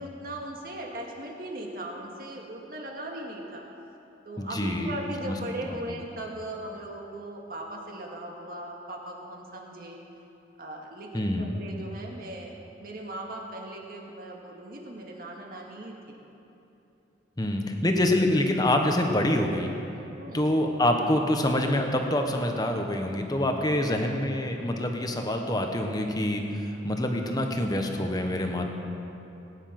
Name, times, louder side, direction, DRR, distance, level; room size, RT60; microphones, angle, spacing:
voice 1, 0.0-3.7 4.2-10.0 10.6-12.5 12.8-16.2 20.2-20.4, right 1 dB, 55° right, 0 dB, 2.0 m, -38 dB
voice 2, 4.4-4.9 5.2-5.3 11.1-11.5 17.4-19.7 20.3-28.7, left 1 dB, 20° left, 3 dB, 1.1 m, -26 dB
19.0 x 9.8 x 6.0 m, 2.9 s
head